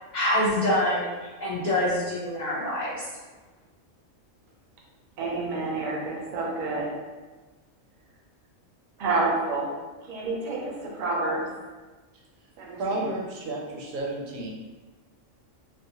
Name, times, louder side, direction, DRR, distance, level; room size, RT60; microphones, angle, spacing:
voice 1, 0.1-1.1 1.4-2.9, left 1 dB, 65° left, -7 dB, 0.4 m, -25 dB
voice 2, 5.2-6.9 9.0-9.7 10.0-11.5 12.6-13.1, right 3 dB, 60° right, -2 dB, 0.5 m, -29 dB
voice 3, 12.7-14.5, right 2 dB, 85° right, -1 dB, 1.0 m, -31 dB
2.4 x 2.1 x 2.7 m, 1.3 s
omnidirectional pair, 1.4 m